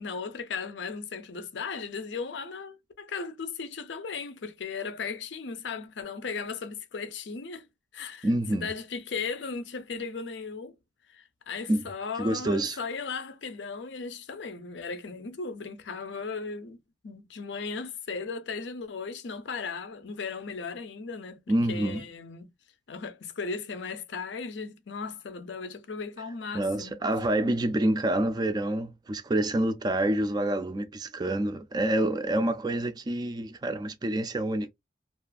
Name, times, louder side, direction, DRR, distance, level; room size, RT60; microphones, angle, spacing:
voice 1, 0.0-7.7 7.9-10.8 11.1-21.4 21.7-22.5 22.9-27.0, left 5 dB, 75° left, 0.5 m, -36 dB
voice 2, 8.2-8.7 11.7-11.8 12.2-12.8 21.5-22.0 26.5-34.7, right 1 dB, 25° right, 0.3 m, -27 dB
2.4 x 2.4 x 2.4 m
head